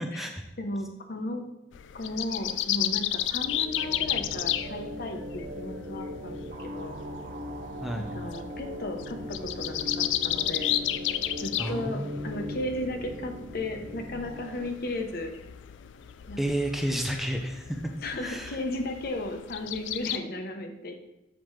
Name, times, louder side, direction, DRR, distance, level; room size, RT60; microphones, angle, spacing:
voice 1, 0.0-0.4 7.8-8.1 11.6-12.5 16.4-17.8 18.2-18.6, right 1 dB, ahead, 3 dB, 0.5 m, -31 dB
voice 2, 0.6-1.4 1.9-7.0 8.0-10.7 11.4-15.3 16.3-16.4 18.0-21.1, left 1 dB, 55° left, 5 dB, 0.8 m, -35 dB
sound 1, 1.7-20.2, left 12 dB, 85° left, 0.3 m, -33 dB
sound 2, 3.1-14.7, left 1 dB, 50° right, 0.6 m, -39 dB
7.4 x 5.0 x 3.1 m, 0.95 s
head